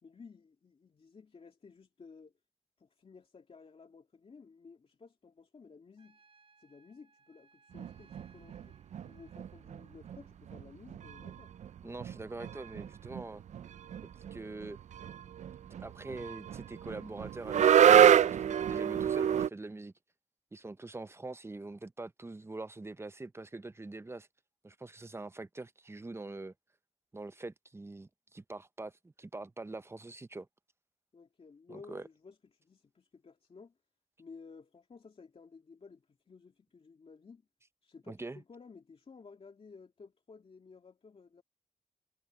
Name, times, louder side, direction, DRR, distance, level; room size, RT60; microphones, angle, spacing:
voice 1, 0.0-2.3 2.8-6.2 6.6-8.8 9.0-11.5 31.1-33.8 34.2-37.5 37.8-41.4, left 4 dB, 55° left, 2.9 m, -55 dB
Trumpet, 6.0-10.3, right 4 dB, 50° right, 5.5 m, -67 dB
sound 1, 7.8-8.7 8.9-9.8 10.1-10.2 10.5-10.6 10.9-19.5, right 9 dB, 75° right, 0.4 m, -27 dB
voice 2, 11.8-13.4 14.3-14.8 15.8-19.9 20.5-24.3 24.6-26.5 27.1-30.5 31.7-32.1 38.1-38.4, right 2 dB, 20° right, 0.7 m, -44 dB
cardioid pair, 80°, 12 cm